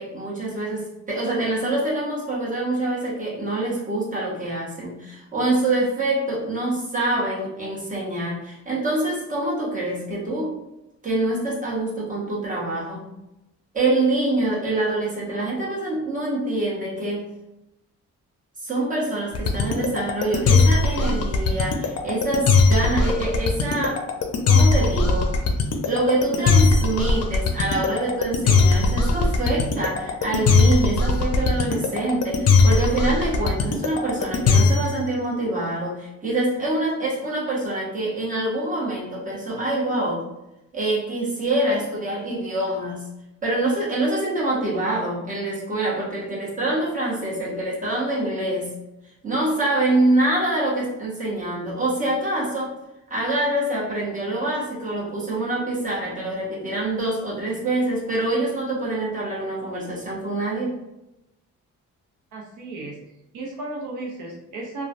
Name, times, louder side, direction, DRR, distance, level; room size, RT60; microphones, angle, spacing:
voice 1, 0.0-10.5 11.0-13.1 13.7-17.3 18.6-24.0 24.5-25.3 25.9-40.2 40.7-43.1 43.4-48.7 49.2-52.7 53.1-60.8, right 2 dB, 25° right, -6 dB, 1.2 m, -25 dB
sound 1, 19.3-35.0, left 4 dB, 55° left, 0.5 m, -19 dB
voice 2, 62.3-63.0 63.3-64.9, right 2 dB, 85° right, -2 dB, 0.7 m, -34 dB
3.2 x 2.3 x 2.5 m, 0.93 s
cardioid pair, 100°, 30 cm